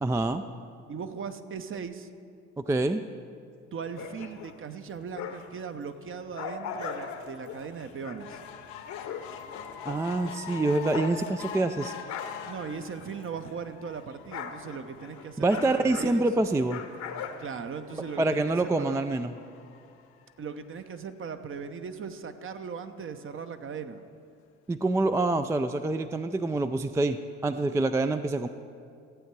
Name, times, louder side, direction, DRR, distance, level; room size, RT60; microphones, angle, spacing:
voice 1, 0.0-0.4 2.6-3.0 9.8-11.9 15.4-16.8 18.2-19.3 24.7-28.5, right 2 dB, 10° right, 9 dB, 0.4 m, -26 dB
voice 2, 0.9-2.1 3.7-8.4 12.5-16.5 17.4-19.0 20.4-24.0, right 6 dB, 40° right, 9 dB, 0.8 m, -38 dB
sound 1, 3.8-5.6 6.0-13.6 13.9-18.2, left 6 dB, 60° left, 1.0 m, -41 dB
sound 2, 8.2-20.8 21.4-21.5 21.8-21.9 22.1-22.2, left 8 dB, 85° left, 0.7 m, -45 dB
14.5 x 8.1 x 4.7 m, 2.4 s
hypercardioid pair, 60°, 32 cm